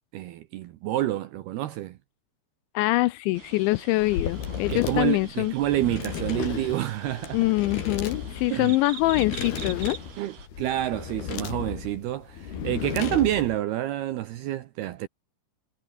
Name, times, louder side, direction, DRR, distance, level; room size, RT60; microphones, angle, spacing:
voice 1, 0.1-2.0 4.7-7.4 8.5-8.8 10.2-15.1, right 14 dB, 75° right, 2.4 m, -28 dB
voice 2, 2.7-5.5 7.3-10.0, left 20 dB, 80° left, 2.7 m, -24 dB
sound 1, 3.3-10.5, right 8 dB, 55° right, 4.6 m, -44 dB
sound 2, 4.0-13.6, left 8 dB, 55° left, 5.0 m, -34 dB
omnidirectional pair, 5.7 m